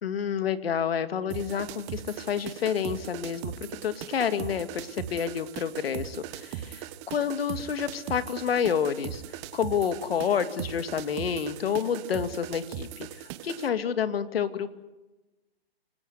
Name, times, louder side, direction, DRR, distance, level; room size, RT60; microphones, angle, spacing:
voice 1, 0.0-3.5 3.8-9.2 9.5-14.7, left 7 dB, 65° left, 11 dB, 2.3 m, -29 dB
sound 1, 1.3-13.7, right 12 dB, 25° right, 1.3 m, -39 dB
30.0 x 20.0 x 8.1 m, 1.1 s
hypercardioid pair, 150°, 31 cm